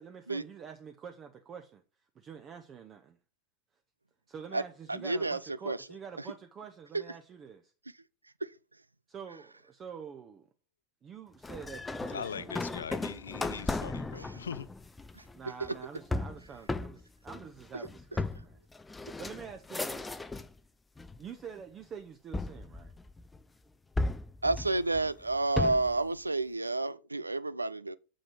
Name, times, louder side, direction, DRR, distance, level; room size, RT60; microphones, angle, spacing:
voice 1, 0.0-1.8 2.1-3.2 4.3-7.7 9.1-10.5 11.0-12.8 15.3-18.6 19.2-20.2 21.2-22.9, right 7 dB, 25° right, 0.9 m, -47 dB
voice 2, 4.9-5.4 5.7-5.8 24.4-28.0, right 2 dB, 80° right, 0.5 m, -30 dB
sound 1, 11.4-20.6 21.0-21.6 22.3-23.4 24.0-26.0, left 2 dB, 10° left, 0.5 m, -36 dB
voice 3, 12.0-14.7 15.7-15.9, left 7 dB, 70° left, 0.6 m, -41 dB
7.6 x 6.4 x 4.8 m
figure-of-eight pair, 90°, 0 cm